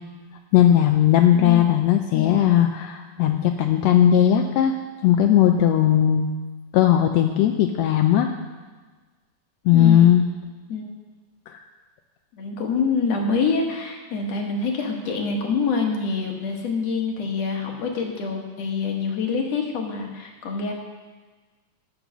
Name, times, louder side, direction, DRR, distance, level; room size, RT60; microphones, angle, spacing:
voice 1, 0.5-4.7 5.0-6.3 6.7-8.3 9.6-10.2 11.5-11.6, left 10 dB, 85° left, 5 dB, 1.5 m, -17 dB
voice 2, 1.3-1.8 2.1-2.5 9.7-10.0 10.7-10.9 12.3-20.7, left 4 dB, 60° left, 2 dB, 2.2 m, -26 dB
14.0 x 5.4 x 6.0 m, 1.3 s
omnidirectional pair, 3.5 m